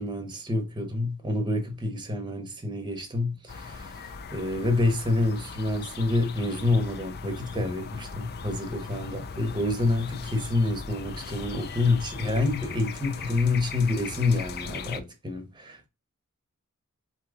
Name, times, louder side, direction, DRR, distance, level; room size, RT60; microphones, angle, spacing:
voice 1, 0.0-4.0 4.3-15.9, left 2 dB, 20° right, 1.0 m, -27 dB
sound 1, 3.5-15.0, left 5 dB, 45° left, 0.5 m, -39 dB
4.8 x 2.9 x 3.7 m
head